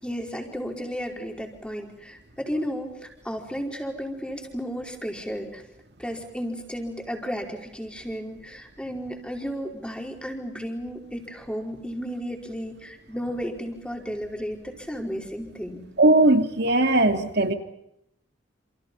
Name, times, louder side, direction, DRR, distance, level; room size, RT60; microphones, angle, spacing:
voice 1, 0.0-5.6 6.0-15.9, equal, 5° left, 2 dB, 4.8 m, -33 dB
voice 2, 16.0-17.5, right 2 dB, 65° right, 6 dB, 3.0 m, -19 dB
29.0 x 28.5 x 5.6 m, 0.79 s
head